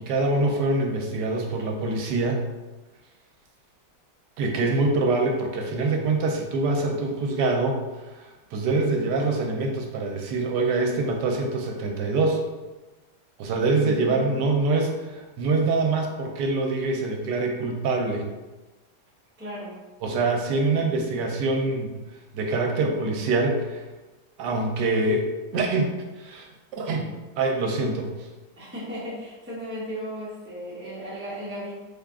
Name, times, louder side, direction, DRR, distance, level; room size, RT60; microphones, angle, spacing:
voice 1, 0.0-2.5 4.4-12.4 13.4-18.3 20.0-21.9 22.3-23.8 24.4-25.3 25.5-26.5 26.8-27.1 27.4-28.1, right 3 dB, 75° right, 1 dB, 1.1 m, -25 dB
voice 2, 13.8-14.4 19.4-19.8 28.6-31.8, equal, 15° right, -7 dB, 0.5 m, -35 dB
3.4 x 2.3 x 3.5 m, 1.2 s
omnidirectional pair, 1.9 m